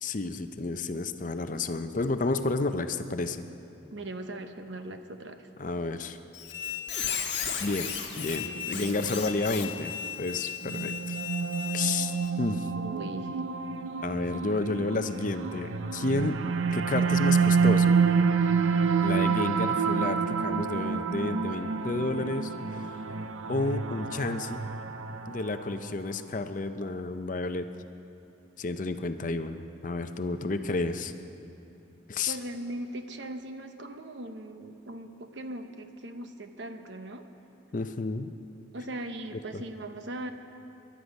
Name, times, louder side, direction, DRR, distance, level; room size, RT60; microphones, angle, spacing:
voice 1, 0.0-3.5 5.6-6.2 7.3-11.2 11.7-12.7 14.0-16.4 16.7-17.9 19.0-23.1 23.5-24.6 25.3-27.7 28.6-31.1 32.1-32.4 37.7-38.3 39.5-39.6, left 3 dB, 40° left, 9 dB, 0.5 m, -31 dB
voice 2, 3.9-5.4 8.4-9.3 12.8-13.4 19.2-19.4 32.3-37.3 38.7-40.3, right 1 dB, 65° right, 7 dB, 0.9 m, -39 dB
Squeak, 6.3-12.3, left 8 dB, 55° left, 1.4 m, -35 dB
sound 1, 10.6-26.0, right 5 dB, 85° right, 0.6 m, -28 dB
21.0 x 11.5 x 5.3 m, 2.8 s
head